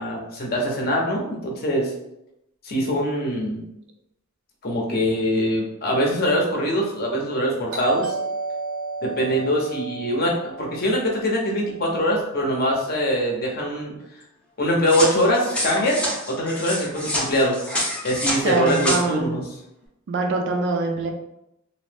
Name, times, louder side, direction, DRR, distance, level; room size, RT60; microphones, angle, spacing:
voice 1, 0.0-1.9 2.6-3.6 4.6-8.1 9.0-13.9 14.6-17.6 18.0-19.4, equal, 45° left, -1 dB, 0.7 m, -23 dB
Doorbell, 7.7-12.3, right 3 dB, 85° right, 1.2 m, -33 dB
sound 1, 14.9-19.0, equal, 5° left, 0.6 m, -27 dB
voice 2, 18.4-19.4 20.1-21.1, right 3 dB, 60° right, 3 dB, 0.4 m, -24 dB
2.6 x 2.0 x 3.2 m, 0.83 s
head